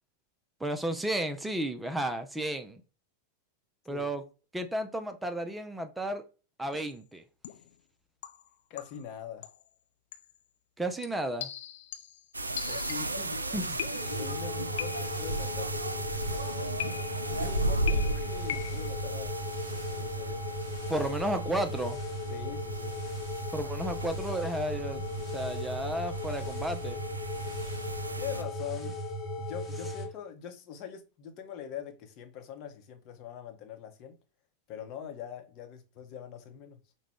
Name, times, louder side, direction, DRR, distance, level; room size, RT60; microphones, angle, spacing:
voice 1, 0.6-2.8 3.9-4.2 4.5-6.2 6.6-7.2 10.8-11.5 13.5-13.8 20.9-22.0 23.5-25.0 25.3-27.0, right 1 dB, 5° right, 0.4 m, -33 dB
sound 1, 6.7-7.0 7.4-7.8 8.2-9.1 9.4-9.7 10.1-10.4 11.0-13.3 13.8-14.4 14.8-15.3 16.8-17.4 17.9-18.9, left 10 dB, 55° left, 0.4 m, -40 dB
voice 2, 8.7-9.5 12.7-13.7 14.0-16.1 17.3-19.4 19.9-20.4 20.8-21.1 22.3-23.0 28.2-28.9 29.4-34.2 34.7-36.8, left 8 dB, 40° left, 0.8 m, -43 dB
sound 2, 12.3-28.4, right 1 dB, 80° right, 0.3 m, -36 dB
sound 3, 14.0-30.1, left 1 dB, 15° left, 1.1 m, -37 dB
4.7 x 2.1 x 3.5 m
figure-of-eight pair, 90°, 0 cm